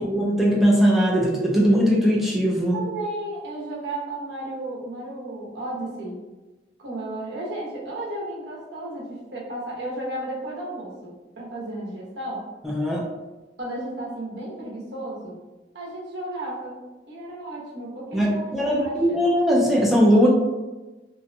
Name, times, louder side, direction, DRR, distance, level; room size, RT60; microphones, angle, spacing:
voice 1, 0.0-2.8 12.6-13.0 18.1-20.3, equal, ahead, -4 dB, 0.3 m, -20 dB
voice 2, 2.7-6.2 6.8-12.5 13.6-15.4 15.7-16.8 17.1-19.2, right 1 dB, 70° right, -4 dB, 0.8 m, -33 dB
2.6 x 2.1 x 2.5 m, 1.1 s
head